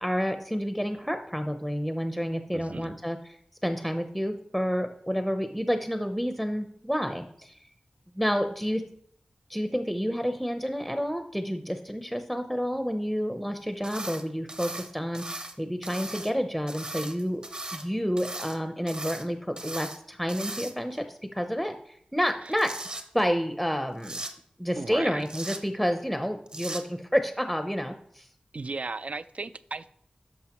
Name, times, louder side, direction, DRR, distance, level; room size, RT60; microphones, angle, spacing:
voice 1, 0.0-7.6 8.1-8.8 9.5-17.4 17.7-22.7 23.1-24.2 24.6-28.3, equal, ahead, 7 dB, 0.6 m, -29 dB
voice 2, 2.5-2.9 22.4-22.6 24.8-25.3 28.5-29.9, right 3 dB, 55° right, 15 dB, 0.3 m, -36 dB
sound 1, 13.8-14.2 14.5-15.5 15.8-16.3 16.7-17.8 18.2-18.6 18.9-19.2 19.6-20.0 20.3-21.0 22.3-23.0 24.0-24.3 25.2-25.6 26.5-26.8, right 2 dB, 35° right, 0.9 m, -38 dB
11.5 x 5.7 x 3.0 m, 0.69 s
wide cardioid pair, 80°, 3 cm